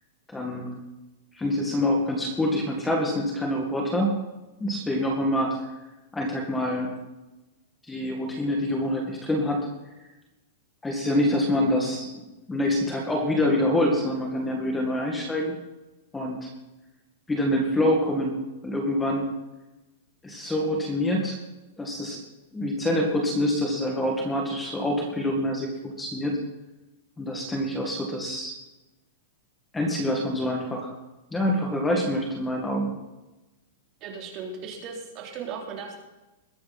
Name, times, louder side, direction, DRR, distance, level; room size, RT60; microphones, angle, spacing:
voice 1, 0.3-0.7 1.3-4.1 4.6-5.6 6.1-6.9 7.9-9.7 10.8-12.2 12.5-15.6 16.1-16.5 17.3-18.4 18.6-19.3 20.2-21.4 21.8-22.2 22.5-25.7 26.0-26.3 27.2-28.5 29.7-30.9 31.3-32.9, left 1 dB, 10° left, 1 dB, 2.0 m, -26 dB
voice 2, 34.0-35.9, right 5 dB, 35° right, 0 dB, 3.5 m, -37 dB
21.5 x 9.4 x 4.2 m, 1.0 s
supercardioid pair, 155°, 0 cm